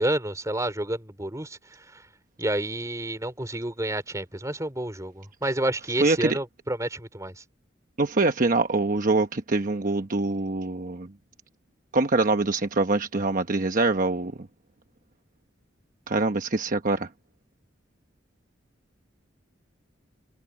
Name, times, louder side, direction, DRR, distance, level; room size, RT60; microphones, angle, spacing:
voice 1, 0.0-1.6 1.9-2.0 2.4-7.4, right 1 dB, 15° right, 3.6 m, -29 dB
voice 2, 6.0-6.4 8.0-11.1 11.9-14.3 16.1-17.1, right 3 dB, 45° right, 1.0 m, -24 dB
head